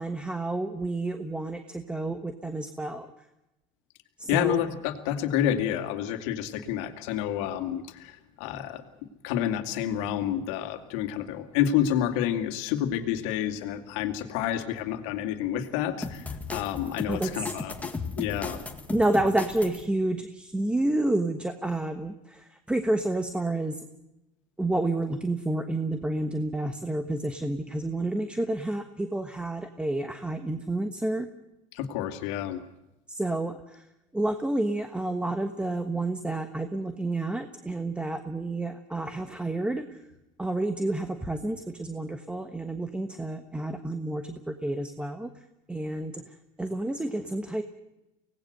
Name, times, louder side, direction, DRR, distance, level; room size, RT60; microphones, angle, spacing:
voice 1, 0.0-3.1 4.2-4.6 17.1-17.5 18.9-23.8 24.6-31.3 33.1-33.8 34.1-39.8 40.4-45.3 45.7-46.2 46.6-47.6, right 2 dB, 5° right, 7 dB, 1.2 m, -29 dB
voice 2, 4.3-8.8 9.2-17.7 18.2-18.6 31.7-32.6, left 10 dB, 75° left, 6 dB, 2.4 m, -29 dB
sound 1, 16.0-19.8, left 3 dB, 10° left, 1.9 m, -36 dB
24.5 x 18.5 x 6.7 m, 0.96 s
supercardioid pair, 120°, 16 cm